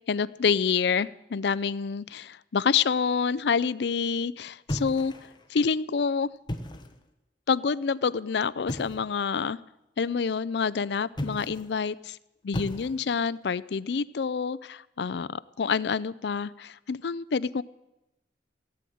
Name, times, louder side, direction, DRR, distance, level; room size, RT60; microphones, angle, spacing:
voice 1, 0.1-5.1 5.5-6.3 7.5-9.6 10.0-12.2 12.4-17.6, left 5 dB, 65° left, 18 dB, 0.4 m, -27 dB
sound 1, 4.7-5.5 6.3-7.0 8.7-9.1 11.1-11.8 12.5-13.2, left 1 dB, 25° left, 1.1 m, -35 dB
16.5 x 7.8 x 9.3 m, 0.94 s
head